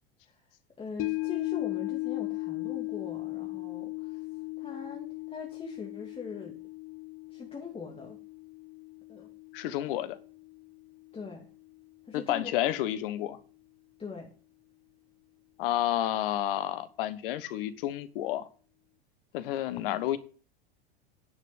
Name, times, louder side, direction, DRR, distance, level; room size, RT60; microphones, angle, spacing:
voice 1, 0.8-4.3 4.6-6.6 7.3-8.2 9.1-9.3 10.1-10.2 11.1-11.5 12.1-12.5 14.0-14.3, left 4 dB, 20° left, 2.6 m, -42 dB
sound 1, 1.0-11.4 11.7-11.8, left 25 dB, 45° left, 0.7 m, -37 dB
voice 2, 9.5-10.2 12.1-13.4 15.6-18.5 19.3-20.2, left 13 dB, 65° left, 1.4 m, -30 dB
10.5 x 6.1 x 7.3 m
hypercardioid pair, 85°, 30 cm